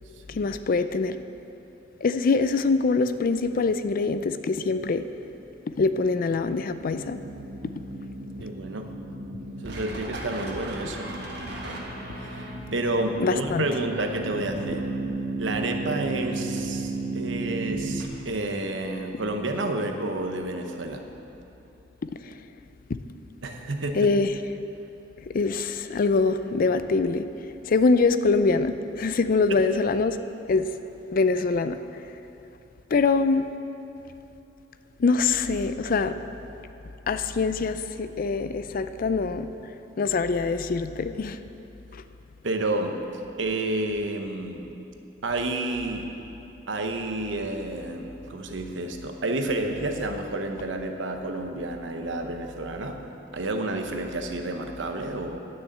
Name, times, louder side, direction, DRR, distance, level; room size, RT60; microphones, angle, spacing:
voice 1, 0.3-1.2 2.0-5.0 5.8-7.2 7.6-7.7 13.2-13.7 22.2-22.3 23.9-24.3 25.3-27.3 27.7-30.2 30.5-30.7 31.1-31.8 32.9-33.5 35.0-36.2 37.1-39.5 40.0-41.4 41.9-42.0, left 4 dB, 50° left, 11 dB, 0.4 m, -24 dB
sound 1, 6.9-18.1, right 2 dB, 65° right, 1.6 m, -34 dB
voice 2, 8.4-9.0 9.6-11.1 12.2-14.9 15.4-21.1 23.4-24.1 29.5-29.6 42.4-43.0 43.4-44.8 45.2-46.1 46.7-53.0 53.3-55.4, right 2 dB, 80° right, 4 dB, 0.9 m, -30 dB
10.0 x 6.3 x 7.9 m, 2.9 s
head